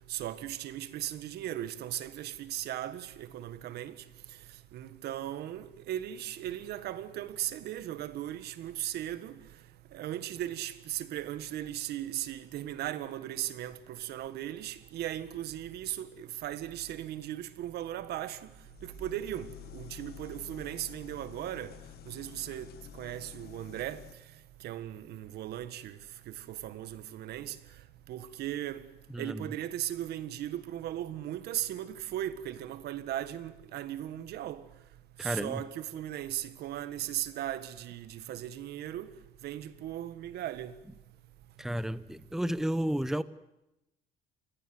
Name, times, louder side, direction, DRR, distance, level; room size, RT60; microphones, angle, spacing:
voice 1, 0.1-3.9 4.7-9.3 9.9-18.4 18.8-21.7 22.0-22.7 22.9-24.0 24.6-26.0 26.3-27.6 28.1-28.9 29.2-34.6 35.2-39.1 39.4-40.7, right 12 dB, 75° right, 1.7 m, -37 dB
sound 1, 18.5-24.1, left 13 dB, 65° left, 1.4 m, -49 dB
voice 2, 29.1-29.5 35.2-35.6 41.6-43.2, right 1 dB, 5° right, 0.9 m, -32 dB
28.0 x 21.0 x 7.9 m
cardioid pair, 110°, 17 cm